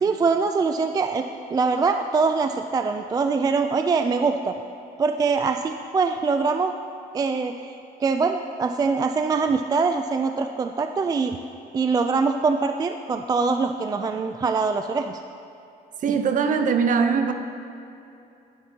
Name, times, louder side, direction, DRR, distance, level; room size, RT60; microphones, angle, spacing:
voice 1, 0.0-4.5 5.0-6.7 7.1-11.4 11.7-15.2, right 4 dB, 25° right, 7 dB, 0.3 m, -23 dB
voice 2, 16.0-17.3, right 6 dB, 50° right, 7 dB, 0.8 m, -21 dB
12.5 x 10.0 x 2.9 m, 2.7 s
cardioid pair, 110°, 17 cm